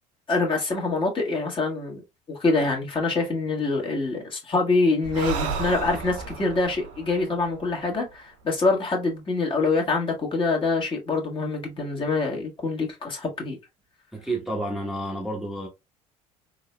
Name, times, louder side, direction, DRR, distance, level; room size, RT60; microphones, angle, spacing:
voice 1, 0.3-2.0 2.3-13.6, left 3 dB, 35° left, 1.5 m, -25 dB
Breathing, 5.0-8.6, right 5 dB, 85° right, 0.7 m, -34 dB
voice 2, 14.1-15.7, right 1 dB, ahead, 1.0 m, -30 dB
3.8 x 2.8 x 2.2 m
supercardioid pair, 90°, 16 cm